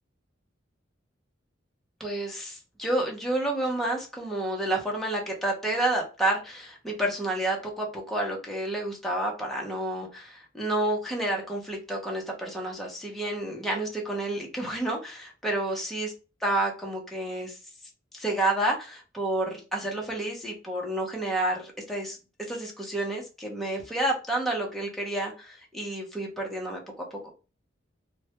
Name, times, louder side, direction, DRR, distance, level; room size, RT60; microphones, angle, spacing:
voice 1, 2.0-16.1 16.4-17.6 18.1-22.2 22.5-27.0, right 1 dB, ahead, -1 dB, 0.6 m, -30 dB
2.2 x 2.1 x 2.7 m, 0.32 s
head